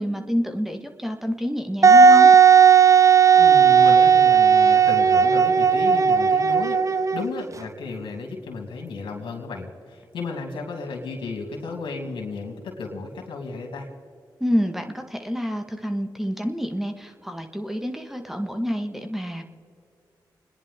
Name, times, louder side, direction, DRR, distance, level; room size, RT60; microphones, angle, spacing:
voice 1, 0.0-2.3 14.4-19.5, equal, 5° right, 5 dB, 1.6 m, -28 dB
Wind instrument woodwind instrument, 1.8-7.4, right 6 dB, 40° right, 0.6 m, -14 dB
voice 2, 3.4-13.9, left 4 dB, 80° left, 1 dB, 2.8 m, -34 dB
29.5 x 10.5 x 3.7 m, 2.4 s
supercardioid pair, 45°, 8 cm